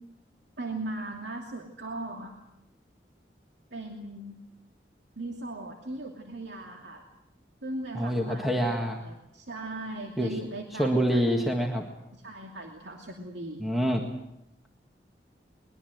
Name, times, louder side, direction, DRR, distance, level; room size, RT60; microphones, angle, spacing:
voice 1, 0.6-2.3 3.7-4.4 5.2-7.1 7.6-11.2 12.1-13.7, right 2 dB, 80° right, 1 dB, 2.7 m, -38 dB
voice 2, 7.9-9.0 10.2-10.3 10.8-11.8 13.6-14.0, equal, ahead, 1 dB, 1.7 m, -26 dB
22.5 x 21.5 x 7.9 m, 0.86 s
head